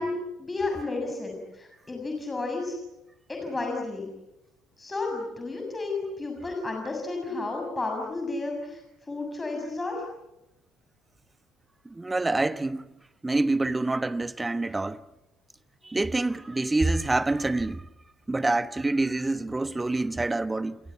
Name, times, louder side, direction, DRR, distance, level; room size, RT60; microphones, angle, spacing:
voice 1, 0.0-2.7 3.3-4.1 4.8-8.8 9.1-10.0, left 3 dB, 20° left, 6.9 m, -32 dB
voice 2, 11.8-12.9 13.2-15.0 15.8-17.9 18.3-20.8, right 2 dB, 15° right, 1.3 m, -26 dB
29.5 x 25.0 x 7.2 m
figure-of-eight pair, 55°, 0 cm